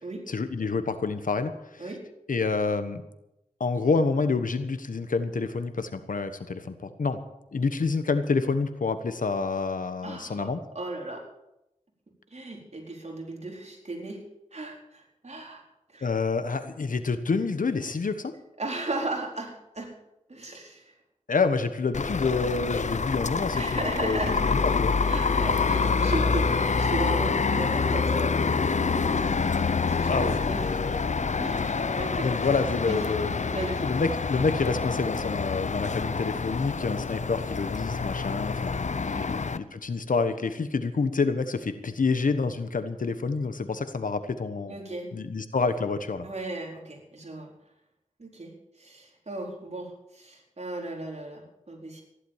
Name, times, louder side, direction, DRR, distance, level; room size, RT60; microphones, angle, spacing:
voice 1, 0.3-1.8 2.3-3.0 3.6-7.2 7.5-10.6 16.0-18.4 21.3-24.9 30.1-31.1 32.2-33.5 33.8-44.8 45.1-46.3, left 4 dB, 90° left, 10 dB, 1.3 m, -28 dB
voice 2, 10.0-11.2 12.3-14.2 14.5-15.6 15.9-16.1 18.6-19.9 20.3-20.9 23.5-24.6 25.1-29.3 29.9-30.7 31.4-32.3 32.9-33.0 33.5-33.9 39.1-39.3 44.7-45.1 46.2-47.5 48.2-48.5 48.8-52.0, right 2 dB, 55° right, 0 dB, 4.4 m, -36 dB
sound 1, 21.9-39.6, left 4 dB, 60° left, 0.7 m, -27 dB
15.0 x 11.5 x 7.4 m, 0.87 s
wide cardioid pair, 55°, 13 cm